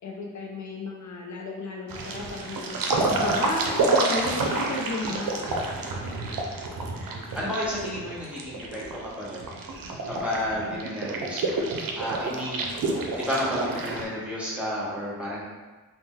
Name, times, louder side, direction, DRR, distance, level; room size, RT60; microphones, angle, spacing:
voice 1, 0.0-5.3, left 2 dB, 60° left, -1 dB, 0.4 m, -33 dB
sound 1, 1.9-14.0, right 3 dB, 85° right, 0.5 m, -29 dB
voice 2, 5.7-6.1 7.3-8.8 9.2-9.5 10.1-11.6 11.9-12.7 13.2-15.4, left 1 dB, 5° right, -7 dB, 0.8 m, -31 dB
2.7 x 2.1 x 3.6 m, 1.3 s
wide cardioid pair, 105°, 33 cm